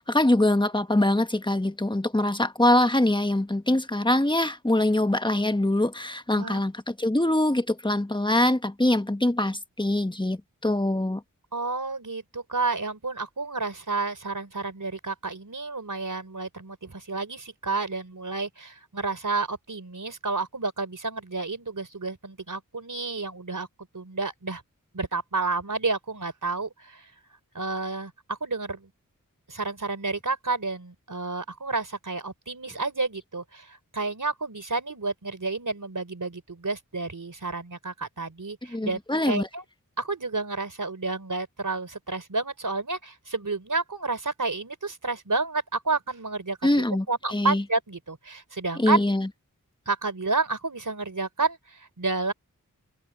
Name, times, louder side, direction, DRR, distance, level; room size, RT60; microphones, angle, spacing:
voice 1, 0.0-11.2 38.7-39.5 46.6-47.0 47.3-47.6 48.8-49.3, left 1 dB, 15° left, 1.4 m, -23 dB
voice 2, 11.5-23.7 23.9-24.6 24.9-27.1 27.5-28.9 29.5-39.0 39.3-39.6 40.0-46.7 47.1-49.0 49.9-52.3, right 3 dB, 65° right, 3.9 m, -30 dB
open air
wide cardioid pair, 40°, 34 cm